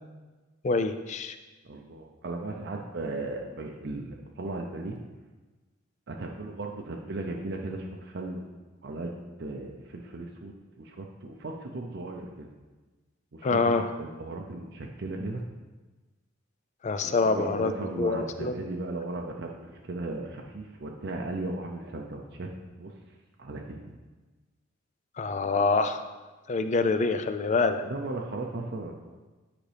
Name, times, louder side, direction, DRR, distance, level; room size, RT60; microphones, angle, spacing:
voice 1, 0.6-1.4 13.4-13.9 16.8-18.5 25.2-26.1 26.5-27.9, left 3 dB, 35° left, 10 dB, 0.4 m, -26 dB
voice 2, 1.7-5.0 6.1-8.6 8.8-9.1 9.4-12.5 13.3-15.4 17.0-22.5 22.8-22.9 23.4-23.9 27.8-29.1, right 2 dB, 55° right, 1 dB, 0.6 m, -36 dB
8.7 x 5.0 x 3.4 m, 1.2 s
head